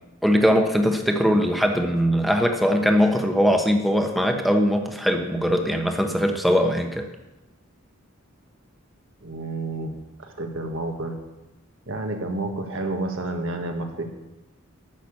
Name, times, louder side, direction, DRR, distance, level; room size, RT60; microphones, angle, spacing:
voice 1, 0.2-7.1, equal, ahead, 4 dB, 1.1 m, -21 dB
voice 2, 9.2-11.2 11.9-14.1, right 2 dB, 60° right, 4 dB, 1.7 m, -30 dB
10.5 x 7.0 x 8.6 m, 1.0 s
head